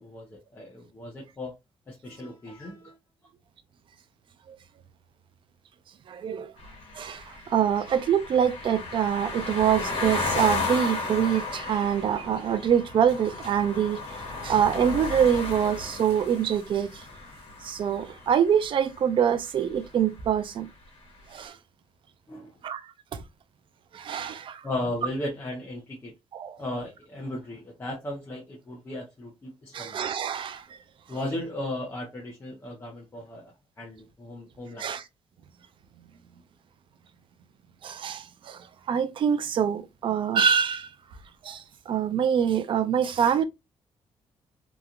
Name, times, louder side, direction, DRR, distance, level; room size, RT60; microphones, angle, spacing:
voice 1, 0.0-1.5 1.9-2.9 22.3-22.6 24.1-24.2 24.6-26.1 26.6-30.0 31.1-34.9, left 1 dB, 20° left, 0.7 m, -36 dB
sound 1, 6.6-18.6, left 3 dB, 60° left, 1.3 m, -34 dB
voice 2, 7.5-14.0 14.4-16.9 17.7-20.7 21.4-21.5 22.6-22.8 24.1-24.4 26.4-26.5 29.7-30.6 34.8-35.0 37.8-38.2 38.9-40.9 41.5-41.6 41.9-43.4, right 8 dB, 50° right, 0.4 m, -24 dB
2.9 x 2.4 x 2.4 m
cardioid pair, 135°, 11 cm